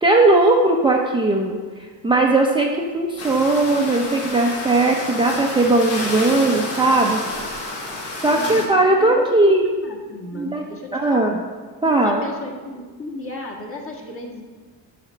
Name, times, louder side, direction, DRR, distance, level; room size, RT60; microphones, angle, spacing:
voice 1, 0.0-1.6 2.0-7.2 8.2-9.6 10.3-10.6 10.9-11.4 11.8-12.2, right 2 dB, 10° right, -1 dB, 0.6 m, -18 dB
sea surf baltic sea, 3.2-8.7, left 2 dB, 75° left, 2.1 m, -30 dB
voice 2, 8.3-8.7 9.0-11.4 11.8-14.4, left 2 dB, 30° left, -1 dB, 1.7 m, -34 dB
9.1 x 4.2 x 6.4 m, 1.5 s
cardioid pair, 120°, 41 cm